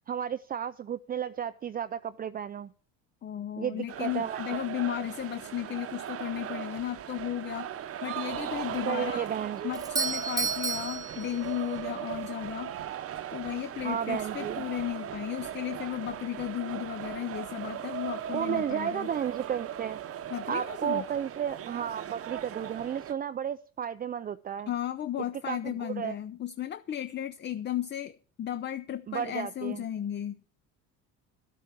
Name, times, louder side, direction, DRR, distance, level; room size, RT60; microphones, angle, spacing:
voice 1, 0.1-2.7 3.6-4.4 8.9-9.8 13.8-14.7 18.3-20.0 20.5-24.7 25.4-26.2 29.1-29.8, right 9 dB, 25° right, 0.5 m, -33 dB
voice 2, 3.2-9.3 9.6-13.0 13.3-19.1 20.3-21.0 24.7-30.5, left 11 dB, 35° left, 0.6 m, -35 dB
sound 1, 3.9-23.1, right 10 dB, 45° right, 1.0 m, -38 dB
Doorbell, 9.7-11.9, right 4 dB, 10° right, 0.9 m, -32 dB
11.5 x 8.4 x 6.0 m
supercardioid pair, 100°, 32 cm